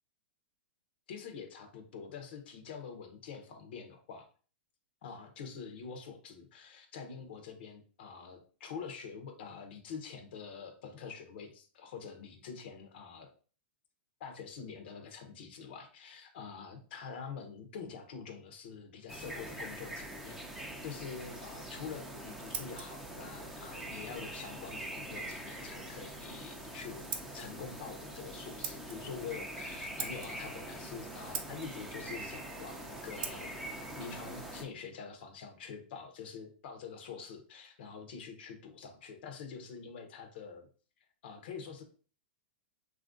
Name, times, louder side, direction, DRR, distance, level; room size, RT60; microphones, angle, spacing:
voice 1, 1.1-4.3 5.0-13.3 14.2-20.4 20.8-33.5 34.0-40.7 41.2-41.8, left 6 dB, 65° left, 5 dB, 0.6 m, -46 dB
sound 1, 19.1-34.6, right 1 dB, 5° right, 0.4 m, -44 dB
Scissors, 21.9-35.5, right 7 dB, 60° right, 0.5 m, -48 dB
3.1 x 2.4 x 2.5 m, 0.41 s
hypercardioid pair, 135°, 6 cm